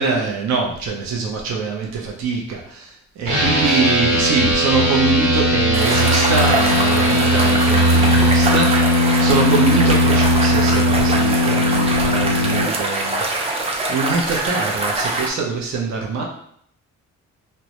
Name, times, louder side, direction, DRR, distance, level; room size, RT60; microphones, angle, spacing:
voice 1, 0.0-13.2 13.9-16.2, right 4 dB, 65° right, -1 dB, 0.6 m, -23 dB
sound 1, 3.3-12.6, left 1 dB, 80° right, 1.4 m, -18 dB
sound 2, 5.7-15.3, right 2 dB, 20° right, 0.4 m, -23 dB
2.2 x 2.1 x 2.8 m, 0.67 s
cardioid pair, 90°, 30 cm